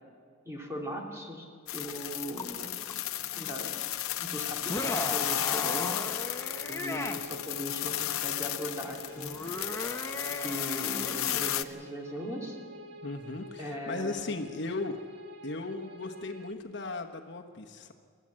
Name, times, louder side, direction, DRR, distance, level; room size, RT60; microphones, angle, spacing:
voice 1, 0.4-2.7 3.3-3.8 4.2-6.1 6.7-9.5 10.4-12.6 13.6-14.3, equal, 15° right, -1 dB, 2.9 m, -39 dB
sound 1, 1.7-11.6, left 13 dB, 90° left, 0.8 m, -34 dB
sound 2, 2.4-2.5 2.9-3.0 4.6-7.2 9.2-11.8, left 1 dB, 15° left, 1.0 m, -37 dB
sound 3, 4.9-16.5, left 1 dB, 55° right, 1.6 m, -48 dB
voice 2, 13.0-15.0 15.4-17.9, left 3 dB, 55° left, 4 dB, 1.2 m, -37 dB
28.5 x 13.0 x 7.6 m, 2.2 s
head